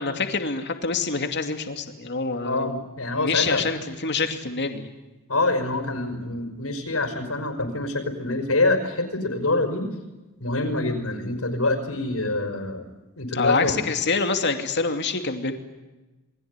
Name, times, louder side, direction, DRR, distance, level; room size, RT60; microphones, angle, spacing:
voice 1, 0.0-2.8 3.2-4.9 13.3-15.5, left 4 dB, 55° left, 6 dB, 2.6 m, -26 dB
voice 2, 2.4-3.6 5.3-9.9 10.4-12.8 13.2-13.7, left 2 dB, 75° left, 5 dB, 5.2 m, -25 dB
28.5 x 21.5 x 9.7 m, 1.1 s
head